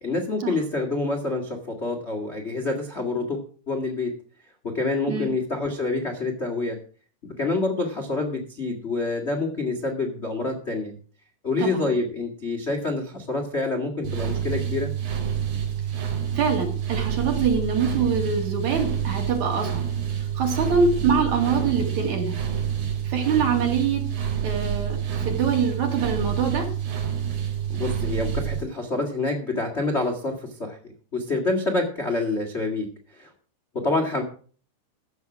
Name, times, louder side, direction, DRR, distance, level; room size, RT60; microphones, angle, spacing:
voice 1, 0.0-4.1 4.6-6.8 7.4-10.9 11.4-14.9 20.6-20.8 27.7-30.8 31.1-32.9 33.1-33.3 33.7-34.2, left 2 dB, 35° left, 2 dB, 1.0 m, -27 dB
sound 1, 14.0-28.6, right 8 dB, 75° right, 4.5 m, -28 dB
voice 2, 16.3-19.9 20.4-22.3 23.0-24.1 24.4-26.7, right 5 dB, 50° right, 3 dB, 3.1 m, -24 dB
14.5 x 7.7 x 6.1 m, 0.43 s
omnidirectional pair, 4.6 m